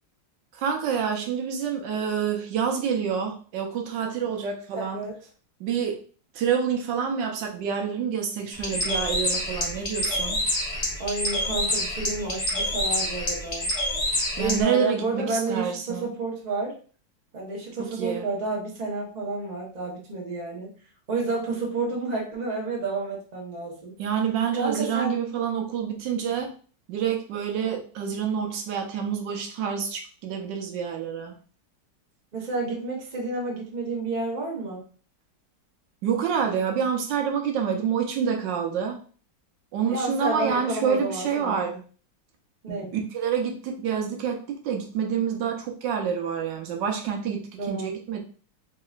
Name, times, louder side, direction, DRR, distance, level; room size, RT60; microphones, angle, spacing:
voice 1, 0.5-5.0 5.6-6.0 6.3-10.4 14.4-16.1 17.8-18.3 24.0-26.5 26.9-31.3 36.0-39.0 39.7-41.7 42.7-48.2, right 7 dB, 80° right, 3 dB, 1.3 m, -27 dB
voice 2, 4.8-5.1 11.0-13.7 14.3-16.7 17.3-20.7 21.1-23.9 24.6-25.2 32.3-34.9 39.9-41.8 42.6-43.0 47.6-47.9, right 3 dB, 30° right, -2 dB, 0.9 m, -30 dB
Bird, 8.5-14.6, left 1 dB, 35° left, 0.7 m, -27 dB
4.1 x 2.8 x 2.4 m, 0.40 s
omnidirectional pair, 2.0 m